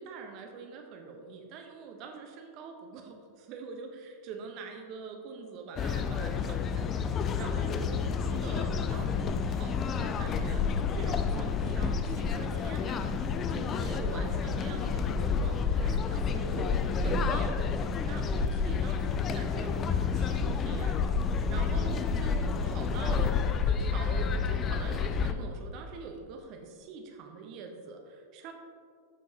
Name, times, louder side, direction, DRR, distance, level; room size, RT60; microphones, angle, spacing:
voice 1, 0.0-10.6 10.9-13.1 13.5-17.8 18.0-28.5, right 5 dB, 40° right, 4 dB, 1.1 m, -43 dB
sound 1, 5.8-25.3, left 5 dB, 25° left, 0.4 m, -29 dB
9.6 x 7.5 x 3.0 m, 2.2 s
figure-of-eight pair, 90°, 0 cm